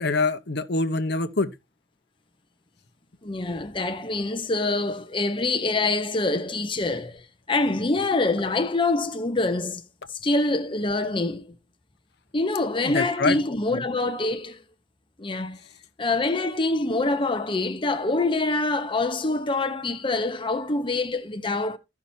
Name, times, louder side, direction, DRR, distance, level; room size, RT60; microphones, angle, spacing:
voice 1, 0.0-1.5 12.8-13.4 13.7-13.8, left 3 dB, 65° left, 1.0 m, -25 dB
voice 2, 3.2-9.8 10.1-11.5 12.3-14.6 15.2-15.6 16.0-21.8, left 2 dB, 30° left, 0.9 m, -25 dB
15.0 x 5.9 x 2.8 m
head